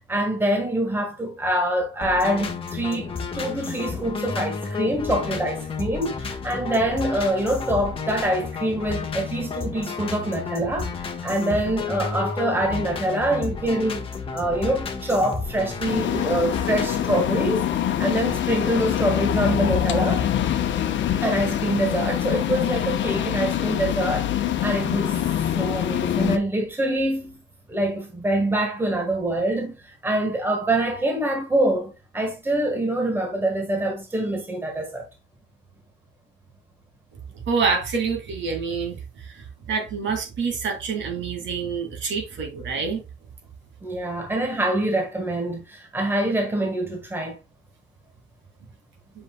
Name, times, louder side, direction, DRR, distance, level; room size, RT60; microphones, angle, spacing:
voice 1, 0.1-10.9 11.2-14.0 14.3-17.7 18.0-20.2 21.2-24.3 24.6-25.2 25.5-27.4 27.7-35.1 43.8-47.4, right 1 dB, 10° right, 1.4 m, -25 dB
sound 1, 2.0-17.2, left 5 dB, 30° left, 1.3 m, -32 dB
sound 2, 15.9-26.4, left 10 dB, 70° left, 0.9 m, -24 dB
voice 2, 37.5-39.0 39.7-43.0, right 5 dB, 70° right, 2.4 m, -26 dB
8.2 x 5.5 x 2.2 m
wide cardioid pair, 175°, 20 cm